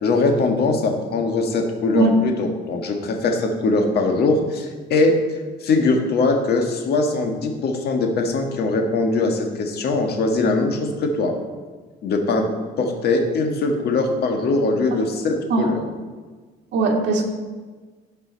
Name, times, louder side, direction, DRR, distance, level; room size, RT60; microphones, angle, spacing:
voice 1, 0.0-5.2 5.6-11.3 12.0-12.5 12.8-15.9, left 3 dB, 60° left, 3 dB, 1.7 m, -21 dB
voice 2, 16.7-17.2, right 4 dB, 65° right, 0 dB, 1.9 m, -19 dB
16.0 x 5.5 x 4.0 m, 1.4 s
cardioid pair, 130°, 19 cm